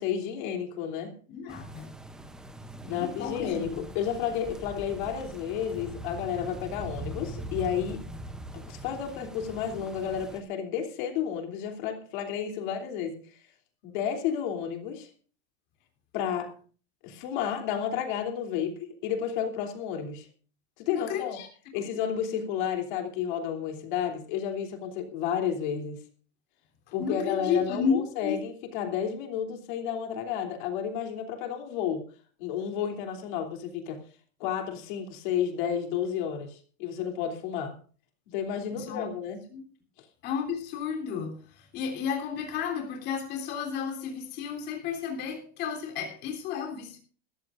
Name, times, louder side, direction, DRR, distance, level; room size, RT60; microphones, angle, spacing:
voice 1, 0.0-1.1 2.9-8.0 8.5-13.2 13.8-15.1 16.1-16.5 17.0-20.3 20.8-21.4 21.7-26.0 26.9-32.0 32.4-34.0 34.4-37.7 38.3-39.4, left 8 dB, 45° left, 5 dB, 3.1 m, -31 dB
voice 2, 1.3-1.9 2.8-3.8 20.9-21.5 21.8-21.9 27.0-28.4 38.7-39.1 39.5-39.6 40.2-47.0, left 7 dB, 30° left, 2 dB, 3.4 m, -32 dB
sound 1, 1.5-10.4, right 1 dB, ahead, 0.6 m, -42 dB
21.0 x 14.5 x 2.5 m, 0.40 s
supercardioid pair, 180°, 33 cm